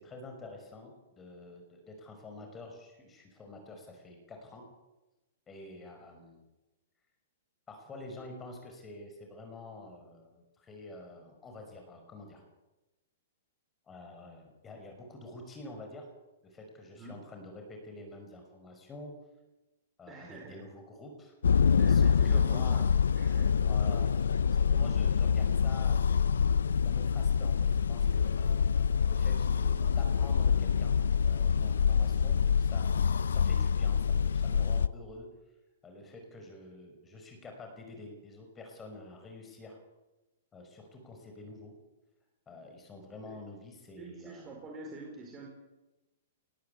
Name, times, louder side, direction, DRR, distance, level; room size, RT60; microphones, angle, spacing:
voice 1, 0.0-4.6 5.5-6.4 7.7-12.4 13.9-16.1 16.5-19.1 20.0-21.3 21.9-22.9 23.6-28.4 29.1-30.9 31.2-35.3 35.8-39.8 40.5-41.7 42.5-44.6, left 2 dB, 20° left, 3 dB, 5.9 m, -48 dB
voice 2, 20.1-20.6 21.7-22.8 23.2-23.7 43.3-43.4 44.0-45.5, right 3 dB, 25° right, 0 dB, 4.5 m, -46 dB
sound 1, 21.4-34.9, left 6 dB, 80° left, 0.7 m, -26 dB
sound 2, 28.2-32.6, left 7 dB, 60° left, 5.1 m, -56 dB
19.5 x 17.0 x 8.1 m, 1.0 s
hypercardioid pair, 130°, 0 cm